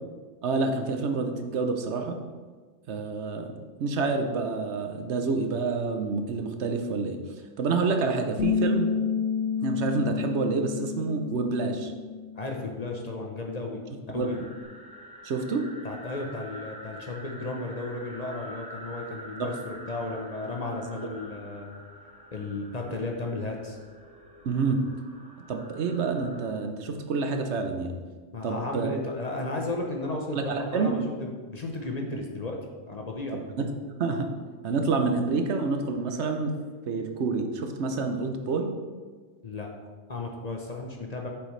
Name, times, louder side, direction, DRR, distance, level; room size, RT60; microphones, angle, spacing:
voice 1, 0.4-2.2 2.9-3.5 3.8-7.2 7.6-8.9 9.6-11.9 14.1-14.3 15.2-15.7 19.4-19.5 24.4-24.8 25.5-28.0 28.4-28.9 30.3-31.0 33.3-34.3 34.6-36.5 36.9-38.8, right 4 dB, 70° right, 5 dB, 1.0 m, -28 dB
Bass guitar, 8.4-12.7 13.0-14.6, left 6 dB, 85° left, 1.0 m, -31 dB
voice 2, 12.4-13.8 14.1-14.4 15.8-21.8 22.3-23.8 28.3-32.6 32.9-33.4 39.4-39.7 40.1-41.3, left 2 dB, 40° left, 1 dB, 0.8 m, -34 dB
sound 1, 14.2-26.5, equal, 5° right, 0.8 m, -46 dB
8.1 x 6.5 x 3.2 m, 1.4 s
omnidirectional pair, 1.2 m